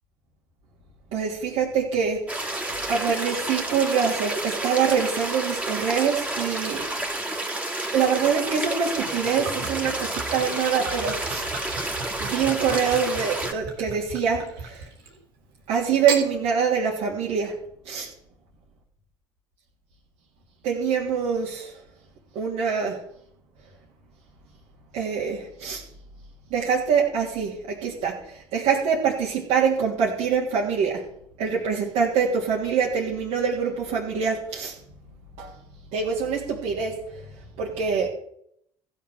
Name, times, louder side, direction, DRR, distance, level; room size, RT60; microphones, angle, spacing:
voice 1, 1.1-6.9 7.9-11.4 12.2-14.8 15.7-17.6 17.8-18.1 20.6-21.7 22.3-23.0 24.9-25.8 26.5-27.5 27.8-31.0 31.4-34.7 35.4-35.5 35.9-37.0 37.6-38.1, right 6 dB, 70° right, -6 dB, 3.0 m, -25 dB
sound 1, 2.3-13.5, right 2 dB, 10° right, 2.9 m, -30 dB
Gurgling / Chink clink / Liquid, 9.1-15.2 15.9-16.3, right 4 dB, 85° right, 3.5 m, -36 dB
15.0 x 7.3 x 6.6 m, 0.71 s
hypercardioid pair, 65°, 12 cm